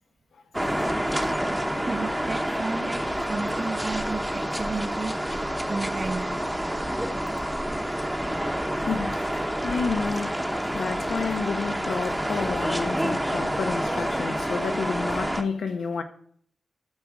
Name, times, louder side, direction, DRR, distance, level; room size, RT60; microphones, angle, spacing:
sound 1, 0.5-15.4, equal, 5° right, 0.9 m, -28 dB
voice 1, 1.9-5.2 5.7-6.4, right 3 dB, 35° right, 0.6 m, -33 dB
voice 2, 8.9-16.0, left 5 dB, 85° left, 1.0 m, -30 dB
12.0 x 7.4 x 4.8 m
wide cardioid pair, 140°, 0 cm